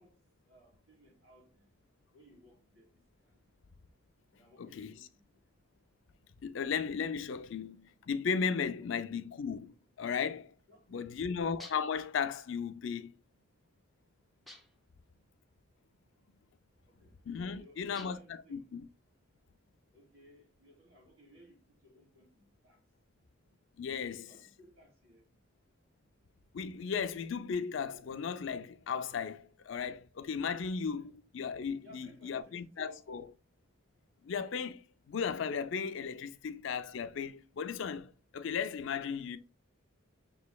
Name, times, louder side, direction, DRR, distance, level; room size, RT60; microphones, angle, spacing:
voice 1, 0.0-1.7 2.1-3.5 4.3-5.4 8.8-8.9 10.7-11.3 16.8-18.7 19.9-22.8 24.2-25.3 31.0-31.1 31.8-33.3, equal, 85° right, 1.6 m, -60 dB
voice 2, 4.6-4.9 6.4-10.5 10.9-13.1 17.3-18.2 18.5-18.9 23.8-24.3 26.5-33.3 34.2-39.4, left 6 dB, 65° left, 0.4 m, -36 dB
sound 1, 11.6-12.0 14.5-14.9 17.9-18.4, left 1 dB, ahead, 0.4 m, -52 dB
6.1 x 3.1 x 2.2 m
head